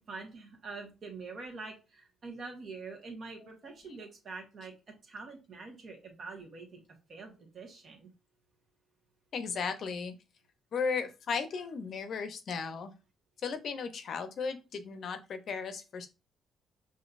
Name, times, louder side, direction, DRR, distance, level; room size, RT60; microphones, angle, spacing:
voice 1, 0.0-4.7 5.0-6.8 7.1-8.1, right 4 dB, 50° right, 2 dB, 1.3 m, -45 dB
voice 2, 9.3-10.1 10.7-12.9 13.4-16.1, left 5 dB, 60° left, 8 dB, 0.6 m, -35 dB
5.2 x 2.8 x 2.5 m, 0.29 s
cardioid pair, 90°, 0 cm